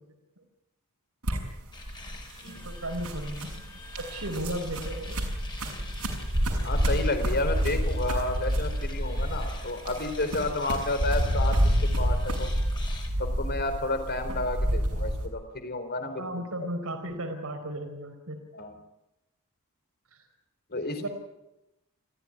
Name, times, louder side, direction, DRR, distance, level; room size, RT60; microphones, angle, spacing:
sound 1, 1.2-15.3, equal, 85° right, 6.6 m, -28 dB
sound 2, 1.7-13.1, left 3 dB, 20° left, 4.9 m, -46 dB
voice 1, 2.5-3.5 4.0-5.2 16.2-18.4 20.1-20.2 21.0-21.1, right 1 dB, 70° right, 4 dB, 4.4 m, -35 dB
voice 2, 6.6-12.5 13.2-16.5 18.5-18.7 20.7-21.1, left 2 dB, 45° left, 8 dB, 4.0 m, -31 dB
28.0 x 15.5 x 9.9 m, 0.93 s
head